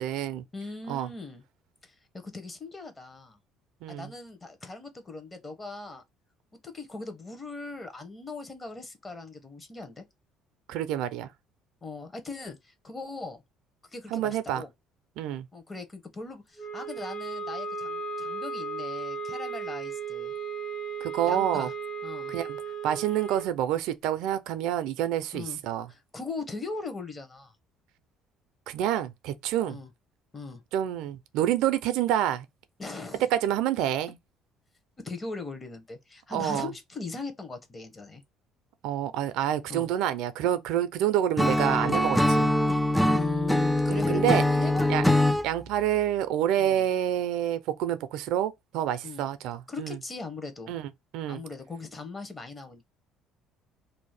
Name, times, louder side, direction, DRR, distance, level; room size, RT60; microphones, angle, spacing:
voice 1, 0.0-0.4 0.9-1.1 3.8-4.1 10.7-11.3 14.1-14.6 15.2-15.5 21.0-21.7 22.3-25.9 28.7-29.8 30.7-32.5 33.3-34.2 36.3-36.7 38.8-42.6 44.1-44.4 44.9-45.0 45.4-50.0 50.7-50.9 51.1-51.4, right 11 dB, 80° right, 0.4 m, -28 dB
voice 2, 0.5-1.4 1.8-3.4 3.9-6.0 6.6-10.0 11.8-13.4 13.9-14.7 15.5-20.3 21.3-21.7 22.0-22.3 25.3-25.6 25.9-27.5 29.7-29.9 30.3-30.6 32.8-33.3 35.0-38.2 39.7-39.9 43.0-45.2 46.6-46.8 49.0-49.3 49.7-50.7 51.3-52.9, left 3 dB, 25° left, 0.8 m, -39 dB
sound 1, 16.6-23.5, right 4 dB, 65° left, 1.3 m, -35 dB
Acoustic guitar / Strum, 41.4-45.5, left 1 dB, ahead, 0.3 m, -23 dB
2.6 x 2.1 x 3.2 m
cardioid pair, 95°, 0 cm